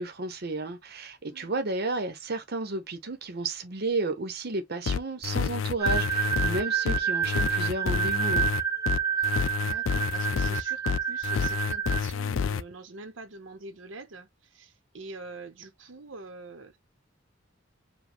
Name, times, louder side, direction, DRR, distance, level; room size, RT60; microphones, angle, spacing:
voice 1, 0.0-8.5, right 3 dB, 55° right, 0.9 m, -32 dB
sound 1, 4.9-12.6, left 6 dB, 85° left, 0.4 m, -28 dB
sound 2, 5.8-12.0, right 8 dB, 15° right, 0.4 m, -29 dB
voice 2, 9.2-16.8, right 3 dB, 80° right, 0.9 m, -44 dB
5.1 x 2.3 x 3.4 m
head